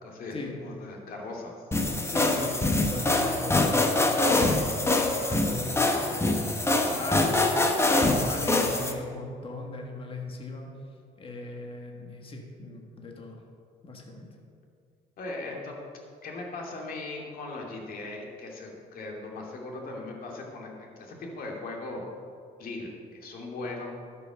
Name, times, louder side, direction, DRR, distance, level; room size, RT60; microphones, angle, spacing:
voice 1, 0.0-1.5 15.2-15.8 16.2-22.0 22.6-23.9, left 2 dB, 60° left, -1 dB, 2.4 m, -38 dB
sound 1, 1.7-8.9, left 2 dB, 15° left, 1.1 m, -24 dB
voice 2, 2.0-10.7 11.2-13.4 13.8-14.3, left 2 dB, 30° left, 1 dB, 1.6 m, -39 dB
12.0 x 6.2 x 6.1 m, 2.2 s
cardioid pair, 110°, 17 cm